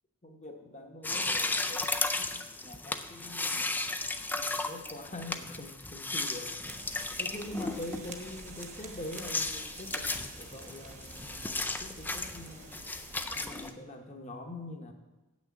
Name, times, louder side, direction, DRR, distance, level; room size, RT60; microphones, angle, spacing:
voice 1, 0.2-3.8 4.2-6.5 7.2-12.8 13.3-14.9, left 1 dB, 30° left, 4 dB, 1.1 m, -44 dB
sound 1, 1.0-13.7, left 3 dB, 10° left, 0.3 m, -35 dB
sound 2, 6.6-13.7, right 4 dB, 35° right, 1.0 m, -48 dB
8.5 x 6.3 x 7.2 m, 1.1 s
head